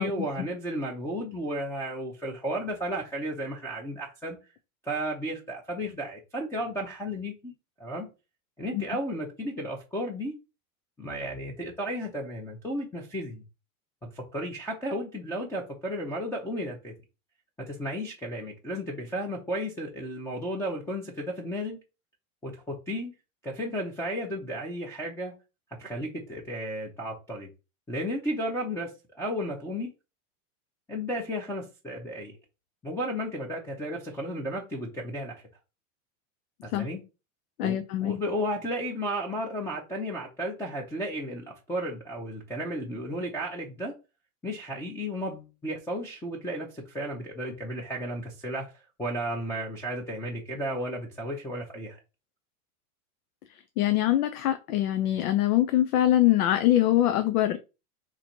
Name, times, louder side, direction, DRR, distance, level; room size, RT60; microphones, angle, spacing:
voice 1, 0.0-4.4 4.8-7.5 7.8-8.1 8.6-10.3 11.0-13.4 14.1-16.9 17.6-21.8 22.4-23.1 23.4-25.3 25.8-27.5 27.9-29.9 30.9-32.3 32.8-35.4 36.6-37.0 37.6-43.9 44.4-52.0, equal, 5° left, 0.6 m, -33 dB
voice 2, 37.6-38.2 53.8-57.6, left 13 dB, 85° left, 0.7 m, -23 dB
4.1 x 3.0 x 4.4 m
supercardioid pair, 150°, 44 cm